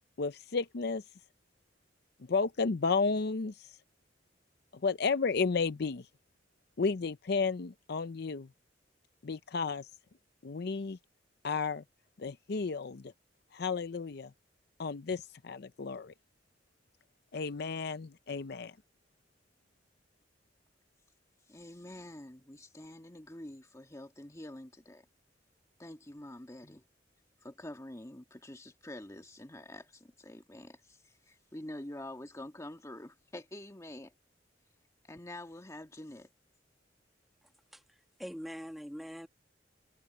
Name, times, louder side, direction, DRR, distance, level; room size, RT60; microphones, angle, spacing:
voice 1, 0.2-1.0 2.2-3.8 4.8-6.1 6.8-8.5 9.2-9.9 10.4-11.0 11.4-11.8 12.2-13.1 13.5-14.3 14.8-16.1 17.3-18.8, left 4 dB, 60° left, 0.6 m, -32 dB
voice 2, 21.5-25.1 25.8-26.8 27.4-34.1 35.0-36.3, left 1 dB, 15° left, 1.8 m, -47 dB
voice 3, 37.4-39.3, equal, ahead, 1.6 m, -44 dB
head